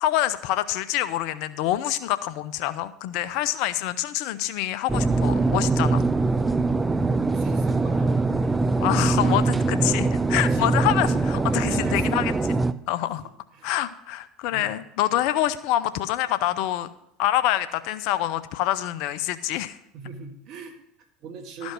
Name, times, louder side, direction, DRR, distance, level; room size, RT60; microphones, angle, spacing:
voice 1, 0.0-6.1 8.8-12.3 12.9-13.2 13.6-16.9 17.2-19.8 21.6-21.7, left 13 dB, 60° left, 14 dB, 0.6 m, -26 dB
sound 1, 4.9-12.7, right 3 dB, 15° right, 0.5 m, -22 dB
voice 2, 7.3-8.4 9.5-9.6 10.4-10.7 11.5-12.2 13.5-13.7 14.5-14.8 19.9-21.7, right 5 dB, 55° right, 5 dB, 1.7 m, -41 dB
12.5 x 5.2 x 6.2 m, 0.80 s
hypercardioid pair, 70°, 0 cm